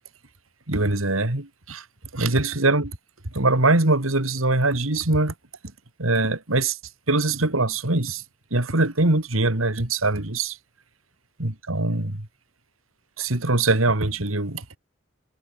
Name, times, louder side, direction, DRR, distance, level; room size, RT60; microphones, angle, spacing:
voice 1, 0.7-1.8 2.1-3.0 3.3-5.3 6.0-6.8 7.1-8.2 8.5-10.6 11.4-12.3 13.2-14.8, right 2 dB, 90° right, 2.9 m, -22 dB
head